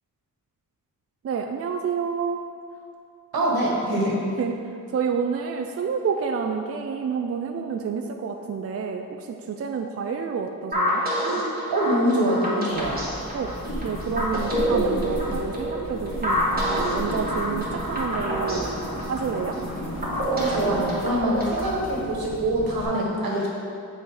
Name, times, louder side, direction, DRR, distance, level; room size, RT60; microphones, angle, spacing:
voice 1, 1.2-2.4 4.4-4.5 4.9-9.1 9.5-11.0 13.3-13.5 13.8-18.7 19.1-19.6 22.9-23.0, right 6 dB, 45° right, 3 dB, 0.4 m, -29 dB
voice 2, 3.3-4.2 11.7-13.0 20.3-23.5, right 1 dB, 85° right, -3 dB, 1.5 m, -24 dB
sound 1, 10.7-21.7, right 1 dB, 25° right, 1.6 m, -28 dB
sound 2, 12.7-22.8, equal, 35° left, 1.5 m, -34 dB
7.0 x 4.1 x 4.9 m, 2.5 s
cardioid pair, 85°, 35 cm